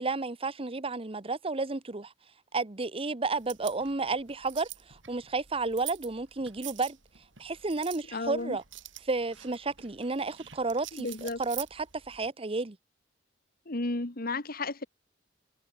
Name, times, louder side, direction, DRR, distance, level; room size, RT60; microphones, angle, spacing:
voice 1, 0.0-2.1 2.5-7.0 7.4-8.6 9.0-12.8, right 3 dB, 30° right, 1.0 m, -32 dB
sound 1, 3.3-12.3, right 14 dB, 90° right, 7.1 m, -46 dB
voice 2, 8.1-8.6 10.9-11.4 13.7-14.9, left 2 dB, 50° left, 1.9 m, -33 dB
head